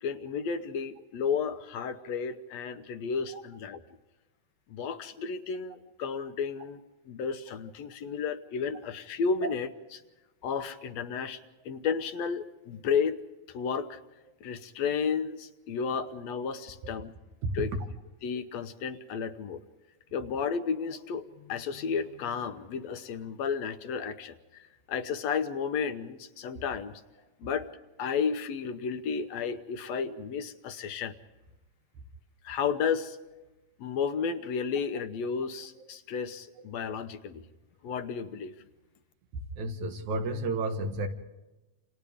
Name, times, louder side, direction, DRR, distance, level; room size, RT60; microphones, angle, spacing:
voice 1, 0.0-3.8 4.7-6.8 7.1-10.0 10.4-11.4 11.7-13.2 13.5-14.0 14.4-17.1 17.5-17.7 18.2-19.6 20.1-27.0 27.4-27.7 28.0-31.1 32.4-33.2 33.8-37.4 37.8-38.6, left 6 dB, 70° left, 9 dB, 2.0 m, -32 dB
voice 2, 39.3-41.1, right 2 dB, 75° right, 5 dB, 3.1 m, -32 dB
28.5 x 28.0 x 3.6 m, 1.1 s
omnidirectional pair, 3.4 m